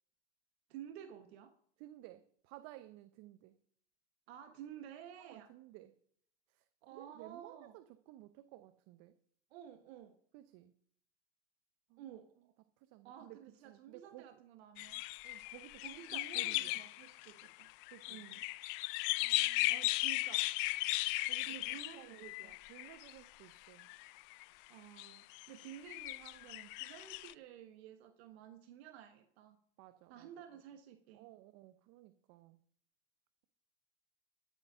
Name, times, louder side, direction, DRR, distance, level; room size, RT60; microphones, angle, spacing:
voice 1, 0.7-1.5 4.3-5.5 6.8-7.8 9.5-10.2 12.0-12.5 13.0-15.0 15.8-17.7 18.1-18.4 19.7-20.5 21.4-22.6 24.7-29.6 30.1-31.3, right 10 dB, 65° right, 8 dB, 1.2 m, -52 dB
voice 2, 1.8-3.6 5.2-5.9 6.5-6.7 6.9-9.1 10.3-10.7 11.9-12.1 12.8-14.4 15.2-16.8 17.9-18.2 19.2-19.7 21.3-24.2 29.8-30.3 31.1-32.6, right 15 dB, 50° right, 12 dB, 0.8 m, -56 dB
sound 1, 14.8-23.1 23.8-24.4 25.0-27.3, left 23 dB, 55° left, 0.5 m, -37 dB
12.5 x 9.3 x 5.6 m, 0.62 s
hypercardioid pair, 105°, 34 cm